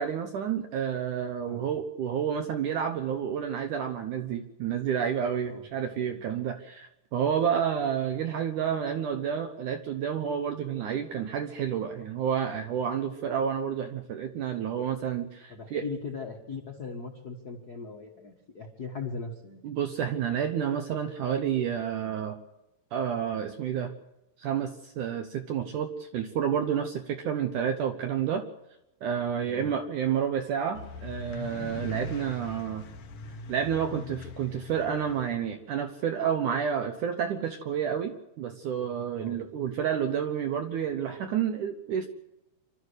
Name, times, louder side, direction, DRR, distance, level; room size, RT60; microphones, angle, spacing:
voice 1, 0.0-15.8 19.6-22.4 22.9-23.9 24.4-28.4 29.0-32.8 33.5-42.1, right 8 dB, 65° right, 6 dB, 2.2 m, -30 dB
voice 2, 15.5-19.6 29.4-29.7 39.2-39.4, left 4 dB, 75° left, 1 dB, 0.8 m, -39 dB
sound 1, 30.7-35.3, left 3 dB, 60° left, 1.6 m, -41 dB
26.5 x 13.0 x 8.1 m, 0.92 s
omnidirectional pair, 4.7 m